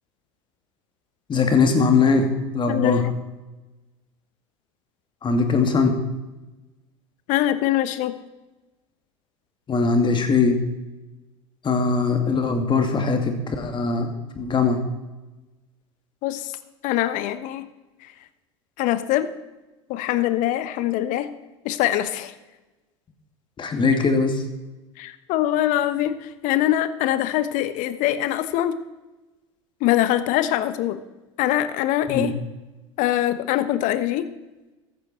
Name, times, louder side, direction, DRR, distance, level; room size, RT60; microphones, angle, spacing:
voice 1, 1.3-2.3 2.5-3.0 5.2-6.0 9.7-10.6 11.6-14.1 14.4-14.8 23.6-24.4 32.1-32.3, left 4 dB, 30° left, 6 dB, 2.5 m, -20 dB
voice 2, 2.7-3.1 7.3-8.1 16.2-16.5 16.8-17.6 18.0-18.1 18.8-19.3 19.9-21.3 21.6-22.3 25.0-28.7 29.8-31.0 31.4-32.3 33.0-34.3, left 13 dB, 50° left, 13 dB, 1.1 m, -23 dB
14.5 x 12.0 x 4.4 m, 1.1 s
hypercardioid pair, 80°, 16 cm